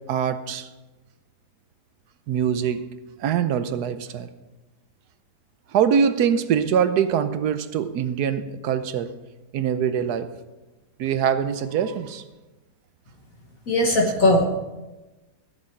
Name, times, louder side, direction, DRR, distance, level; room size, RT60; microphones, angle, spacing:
voice 1, 0.1-0.7 2.3-2.9 3.2-4.3 5.7-9.1 9.5-10.3 11.0-12.2, right 8 dB, 80° right, 1.3 m, -23 dB
voice 2, 13.7-14.4, left 1 dB, 60° left, 1.7 m, -18 dB
15.0 x 11.0 x 4.5 m
omnidirectional pair, 1.7 m